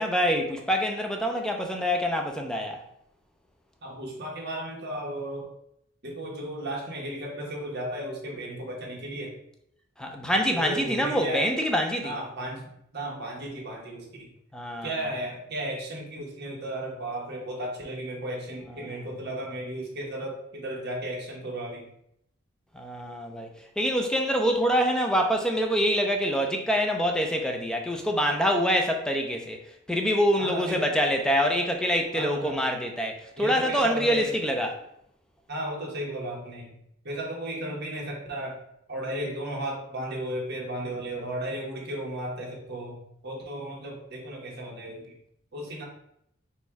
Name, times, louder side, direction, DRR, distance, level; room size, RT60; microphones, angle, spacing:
voice 1, 0.0-2.8 10.0-12.1 14.5-14.9 18.8-18.9 22.7-23.5 23.8-29.6 29.9-34.7, equal, 5° left, 3 dB, 0.5 m, -25 dB
voice 2, 3.8-5.5 6.0-9.4 10.5-11.5 12.0-14.3 14.8-21.9 30.4-30.9 32.1-32.5 33.4-34.4 35.5-36.7 37.0-38.6 38.9-43.0 43.2-45.1 45.5-45.8, right 1 dB, 55° right, -2 dB, 1.2 m, -34 dB
4.3 x 2.3 x 4.5 m, 0.75 s
head